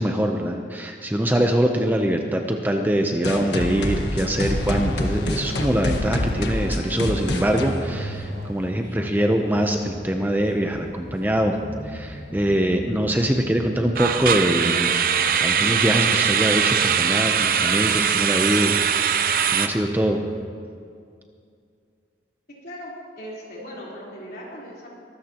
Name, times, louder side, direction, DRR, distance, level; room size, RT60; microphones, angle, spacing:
voice 1, 0.0-11.6 11.8-15.0 15.4-18.8 19.5-20.2, equal, 10° right, 3 dB, 0.7 m, -23 dB
sound 1, 3.2-8.7, left 1 dB, 75° left, 1.4 m, -26 dB
sound 2, 4.6-20.5, equal, 30° left, 2.3 m, -39 dB
sound 3, 7.8-8.0 8.3-8.5 9.0-9.1 14.0-19.7, right 7 dB, 50° right, 0.6 m, -21 dB
voice 2, 23.2-24.9, equal, 55° left, -5 dB, 3.9 m, -38 dB
23.0 x 13.0 x 3.0 m, 2.3 s
head